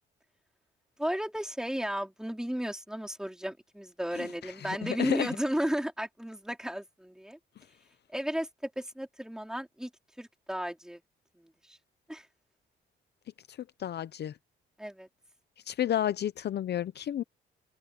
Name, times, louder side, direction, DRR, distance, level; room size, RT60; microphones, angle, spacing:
voice 1, 1.0-7.4 8.1-9.9 10.2-11.0 11.4-11.8 12.1-12.3 14.8-15.1, equal, 5° right, 4.3 m, -34 dB
voice 2, 4.2-5.4 13.5-14.3 15.7-17.2, left 11 dB, 60° left, 0.7 m, -32 dB
open air
cardioid pair, 90°, 20 cm